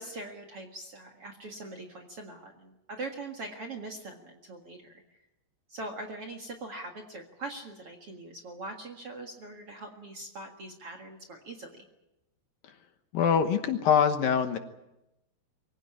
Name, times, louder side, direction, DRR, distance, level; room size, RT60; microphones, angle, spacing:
voice 1, 0.0-5.0 5.7-11.9, right 2 dB, 45° right, 2 dB, 2.1 m, -42 dB
voice 2, 13.1-14.6, left 7 dB, 70° left, 7 dB, 2.7 m, -24 dB
24.5 x 16.5 x 9.7 m, 0.90 s
omnidirectional pair, 4.8 m